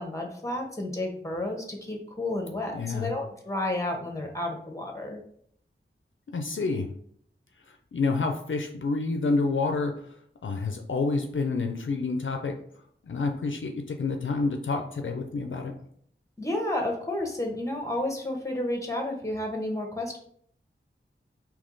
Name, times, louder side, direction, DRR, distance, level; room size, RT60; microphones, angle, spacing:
voice 1, 0.0-5.2 16.4-20.2, left 1 dB, 15° left, 2 dB, 1.1 m, -31 dB
voice 2, 2.7-3.1 6.3-6.9 7.9-10.2 10.4-12.6 13.0-15.7, left 3 dB, 70° left, 4 dB, 0.5 m, -28 dB
3.5 x 2.9 x 3.8 m, 0.63 s
wide cardioid pair, 50°, 21 cm